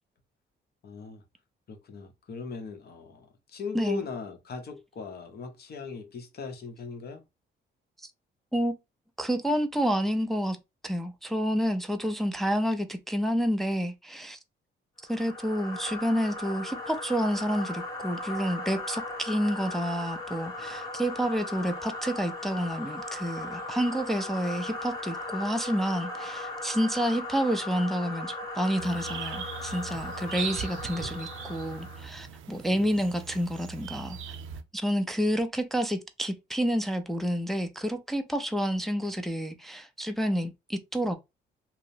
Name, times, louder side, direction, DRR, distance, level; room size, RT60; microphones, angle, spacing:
voice 1, 0.8-1.2 1.7-7.2 30.9-31.2 32.7-32.9, left 5 dB, 50° left, 0.8 m, -39 dB
voice 2, 9.2-10.6 10.8-14.4 15.1-34.2 34.7-41.2, equal, ahead, 0.4 m, -29 dB
sound 1, 15.0-32.1, left 2 dB, 20° left, 0.9 m, -38 dB
sound 2, 28.8-34.6, right 7 dB, 80° right, 0.4 m, -40 dB
2.8 x 2.0 x 2.6 m
cardioid pair, 90°, 20 cm